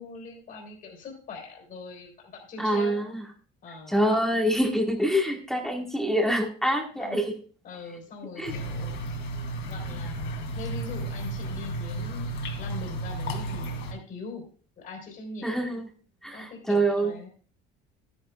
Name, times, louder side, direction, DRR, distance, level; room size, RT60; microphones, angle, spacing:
voice 1, 0.0-3.0 3.6-4.0 7.0-7.2 7.6-9.3 9.7-14.4 14.8-15.6 16.3-17.3, left 4 dB, 40° left, 2 dB, 3.5 m, -42 dB
voice 2, 2.6-3.2 3.9-7.3 8.4-8.5 15.4-15.9 16.2-17.1, right 1 dB, ahead, 1 dB, 1.4 m, -25 dB
sound 1, 8.5-13.9, right 1 dB, 60° left, 2.9 m, -33 dB
12.5 x 10.5 x 2.4 m, 0.43 s
cardioid pair, 160°, 21 cm